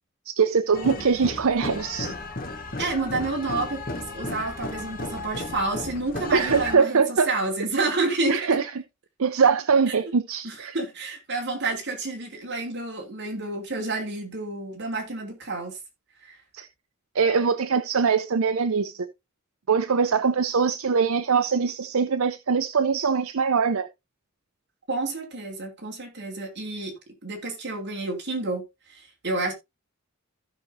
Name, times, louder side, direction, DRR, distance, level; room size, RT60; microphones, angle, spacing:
voice 1, 0.3-2.1 6.3-7.3 8.3-8.7 9.2-10.8 16.5-16.7 17.1-19.1 19.7-23.9, right 5 dB, 75° right, 0.6 m, -22 dB
sound 1, 0.7-6.8, left 2 dB, 40° left, 1.4 m, -34 dB
voice 2, 2.8-8.6 10.4-15.8 16.2-16.4 24.9-26.9 27.2-28.6 28.9-29.5, right 3 dB, 50° right, 3.2 m, -29 dB
15.0 x 6.0 x 2.7 m
head